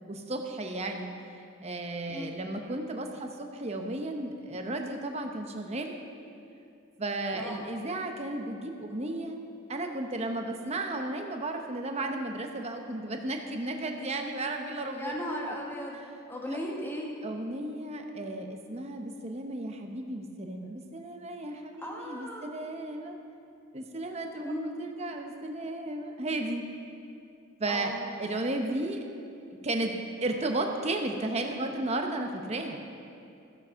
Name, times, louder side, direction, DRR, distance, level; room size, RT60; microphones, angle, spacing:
voice 1, 0.1-1.1 1.6-6.0 7.0-9.4 9.7-15.2 16.5-16.6 17.2-23.2 23.7-24.5 24.8-26.6 27.6-27.9 28.2-29.0 29.6-32.8, right 2 dB, 30° right, 3 dB, 0.9 m, -34 dB
voice 2, 14.9-16.0 16.3-17.1 21.8-22.5 24.4-24.8 27.7-28.0, equal, 10° left, -2 dB, 1.4 m, -36 dB
14.5 x 7.6 x 5.7 m, 2.5 s
head